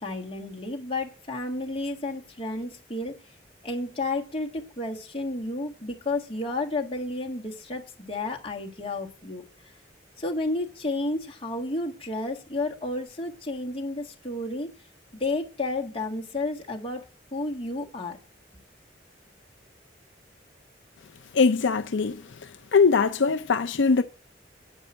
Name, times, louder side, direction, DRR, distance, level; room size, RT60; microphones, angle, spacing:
voice 1, 0.0-3.1 3.6-9.4 10.2-14.7 15.2-17.1 17.3-18.2, left 2 dB, 30° left, 1.7 m, -31 dB
voice 2, 21.3-22.2 22.7-24.0, left 5 dB, 80° left, 0.5 m, -21 dB
8.9 x 5.3 x 7.3 m
head